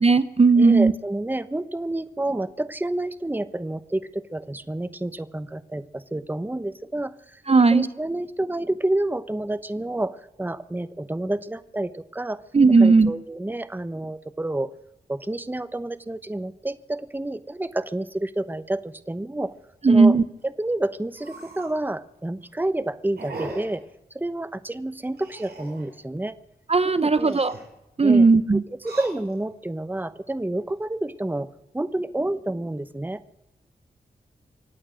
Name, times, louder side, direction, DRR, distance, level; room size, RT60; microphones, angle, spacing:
voice 1, 0.0-0.9 7.5-7.9 12.5-13.1 19.8-20.2 26.7-27.5 28.0-28.6, right 4 dB, 40° right, 13 dB, 0.8 m, -16 dB
voice 2, 0.6-7.4 7.7-12.4 12.8-14.7 15.1-19.5 19.8-20.2 20.4-23.8 24.1-26.4 26.8-27.4 28.0-31.5 31.7-33.2, right 1 dB, 10° right, 14 dB, 0.9 m, -29 dB
sound 1, 19.4-19.6 20.1-20.2 20.4-20.5 21.1-21.8 22.3-22.6 23.2-23.8 25.1-25.9 27.1-27.7 28.7-29.6 30.2-30.7, right 2 dB, 80° right, 7.8 m, -39 dB
25.0 x 8.8 x 6.3 m, 0.91 s
cardioid pair, 40°, 16 cm